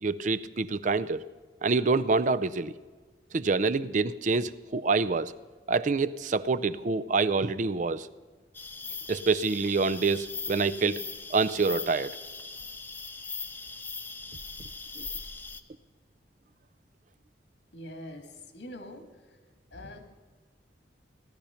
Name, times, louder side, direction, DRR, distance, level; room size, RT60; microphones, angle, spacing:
voice 1, 0.0-1.2 1.6-2.7 3.3-5.3 5.7-8.1 9.1-11.1 11.3-12.2 15.0-15.1, right 4 dB, 40° right, 16 dB, 0.4 m, -26 dB
sound 1, 8.5-15.6, left 4 dB, 10° left, 0.6 m, -40 dB
voice 2, 17.7-19.4 19.7-20.0, left 1 dB, 80° left, 6 dB, 1.8 m, -44 dB
17.0 x 12.0 x 5.7 m, 1.4 s
head